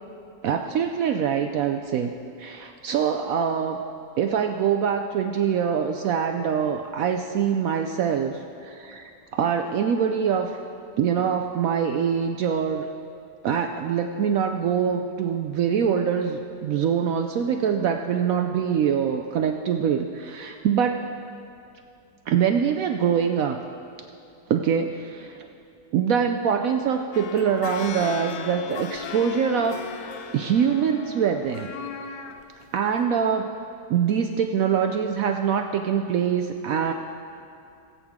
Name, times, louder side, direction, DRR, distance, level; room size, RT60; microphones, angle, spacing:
voice 1, 0.4-2.1 2.4-3.8 4.2-10.6 11.0-12.9 13.4-21.0 22.3-23.6 24.5-25.4 25.9-29.8 30.3-31.7 32.7-33.5 33.9-36.9, right 7 dB, 75° right, 5 dB, 0.7 m, -24 dB
sound 1, 27.1-32.4 33.0-33.1, left 6 dB, 65° left, 1.0 m, -37 dB
18.5 x 8.4 x 3.6 m, 2.6 s
omnidirectional pair, 1.9 m